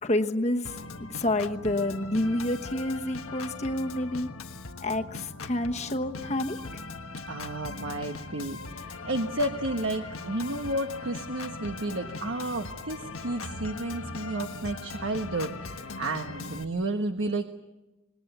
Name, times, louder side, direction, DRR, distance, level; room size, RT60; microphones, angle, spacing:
voice 1, 0.0-4.3 4.8-6.6, left 1 dB, 30° left, 6 dB, 1.2 m, -29 dB
Organ, 0.6-16.6, left 3 dB, 85° left, 1.3 m, -40 dB
voice 2, 7.3-17.4, right 2 dB, 70° right, 6 dB, 1.2 m, -32 dB
26.0 x 21.0 x 8.1 m, 1.0 s
head